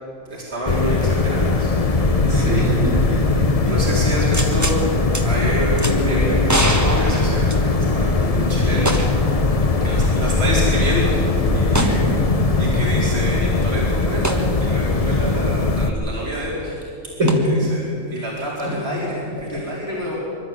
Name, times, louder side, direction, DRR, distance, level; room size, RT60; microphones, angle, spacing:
voice 1, 0.3-1.7 2.3-2.6 3.7-4.8 5.2-9.0 9.8-12.2 12.6-16.8 17.4-20.2, equal, 45° right, -5 dB, 4.6 m, -27 dB
sound 1, 0.7-15.9, left 3 dB, 30° left, 1.0 m, -19 dB
voice 2, 2.2-3.7 9.9-10.0 11.4-12.6 17.2-17.4 18.6-18.8, equal, 80° right, -3 dB, 6.1 m, -24 dB
sound 2, 4.3-4.8 5.1-5.2 5.8-5.9 6.5-8.0 8.9-9.3 9.6-9.7 11.7-12.0 14.2-14.4 17.3-17.4, right 1 dB, 15° right, 1.6 m, -23 dB
25.5 x 13.0 x 9.6 m, 2.6 s
omnidirectional pair, 1.4 m